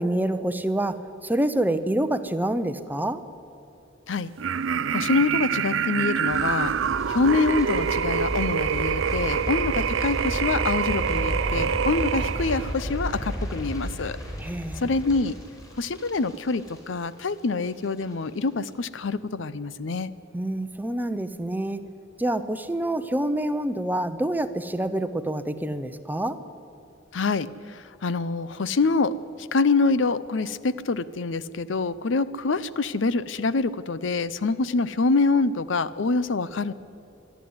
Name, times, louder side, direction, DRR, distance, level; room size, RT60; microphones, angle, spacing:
voice 1, 0.0-3.2 14.4-14.9 20.3-21.8 22.2-26.4, right 1 dB, 10° right, 10 dB, 0.7 m, -27 dB
sound 1, 4.4-12.7, right 7 dB, 75° right, 0.5 m, -26 dB
voice 2, 4.9-6.7 7.1-14.2 14.8-15.3 15.8-20.1 27.1-29.1 29.5-36.7, left 3 dB, 70° left, 16 dB, 0.6 m, -25 dB
sound 2, 6.3-17.4 17.7-18.0 18.3-18.4, equal, 15° left, 4.3 m, -33 dB
25.0 x 11.5 x 9.6 m, 2.8 s
head